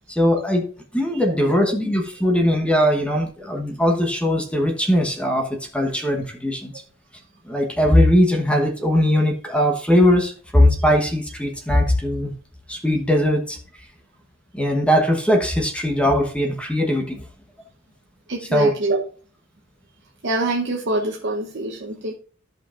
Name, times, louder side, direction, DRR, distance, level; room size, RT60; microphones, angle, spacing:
voice 1, 0.1-0.7 0.9-6.7 7.5-12.3 12.7-13.6 14.5-17.2 18.5-18.7, left 1 dB, 5° left, 2 dB, 1.0 m, -20 dB
voice 2, 1.1-1.5 3.1-3.2 18.3-19.0 20.2-22.1, right 2 dB, 60° right, 1 dB, 0.9 m, -25 dB
14.0 x 5.3 x 2.5 m, 0.43 s
head